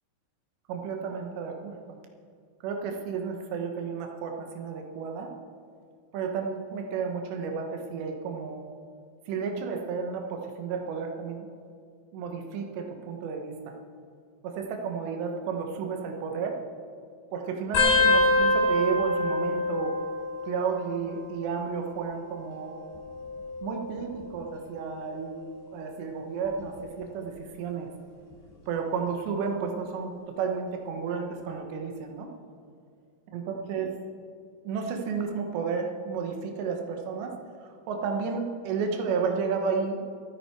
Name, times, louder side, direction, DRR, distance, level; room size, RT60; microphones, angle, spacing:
voice 1, 0.7-1.7 2.6-5.3 6.1-8.7 9.3-11.5 12.1-13.5 14.4-16.6 17.3-20.0 20.5-22.8 23.6-25.4 25.7-27.9 28.7-30.1 30.4-32.3 33.3-33.4 33.7-33.9 34.6-37.3 37.9-40.0, right 5 dB, 70° right, 3 dB, 3.1 m, -32 dB
sound 1, 17.7-20.9 21.2-21.8 22.8-24.3 24.9-25.2 26.4-26.8 28.3-28.4, left 2 dB, 55° left, 6.8 m, -26 dB
26.5 x 9.1 x 4.6 m, 2.3 s
omnidirectional pair, 5.8 m